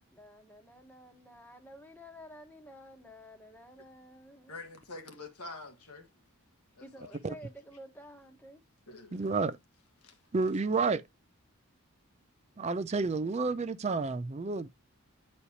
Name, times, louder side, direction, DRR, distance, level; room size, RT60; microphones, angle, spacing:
voice 1, 0.0-4.6 6.8-8.6, equal, 10° left, 1.1 m, -51 dB
voice 2, 4.5-6.1 6.8-7.2 8.9-9.4 10.0-10.1, left 3 dB, 85° left, 1.5 m, -46 dB
voice 3, 9.1-9.6 10.3-11.0 12.6-14.7, right 4 dB, 30° right, 0.4 m, -30 dB
9.7 x 4.2 x 2.9 m
head